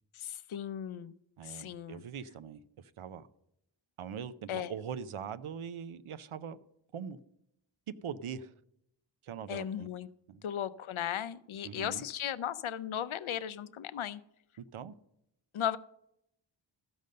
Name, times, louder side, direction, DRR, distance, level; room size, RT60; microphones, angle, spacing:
voice 1, 0.1-1.2 1.4-2.0 4.5-4.7 9.5-10.1 10.4-14.2 15.5-15.8, left 10 dB, 75° left, 0.6 m, -36 dB
voice 2, 1.4-2.6 3.0-3.3 4.0-6.6 6.9-7.2 8.0-8.5 9.2-9.9 10.3-10.4 11.6-12.0 14.7-14.9, right 7 dB, 90° right, 0.7 m, -41 dB
13.5 x 5.3 x 6.5 m
wide cardioid pair, 95°, 48 cm